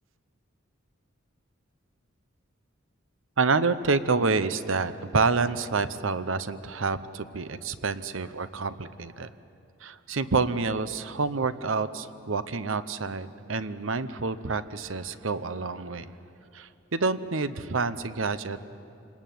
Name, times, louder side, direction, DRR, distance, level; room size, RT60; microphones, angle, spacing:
voice 1, 3.4-9.3 9.8-16.1 16.5-18.6, right 4 dB, 80° right, 13 dB, 0.9 m, -28 dB
27.0 x 20.5 x 9.3 m, 2.7 s
head